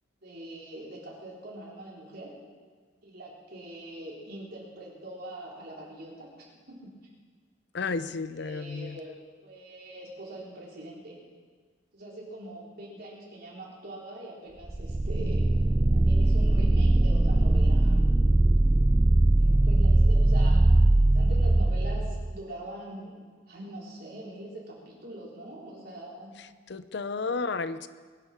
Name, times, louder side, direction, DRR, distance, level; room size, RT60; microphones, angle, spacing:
voice 1, 0.2-2.4 3.0-6.9 7.8-8.0 8.3-9.1 9.4-11.2 11.9-15.5 15.9-18.0 19.4-20.6 21.1-26.3, right 1 dB, 55° right, -4 dB, 4.4 m, -43 dB
voice 2, 7.7-9.0 26.7-27.9, left 4 dB, 65° left, 13 dB, 0.6 m, -32 dB
sound 1, 14.7-22.4, right 2 dB, 15° right, 0.3 m, -21 dB
22.5 x 10.5 x 4.6 m, 1.5 s
head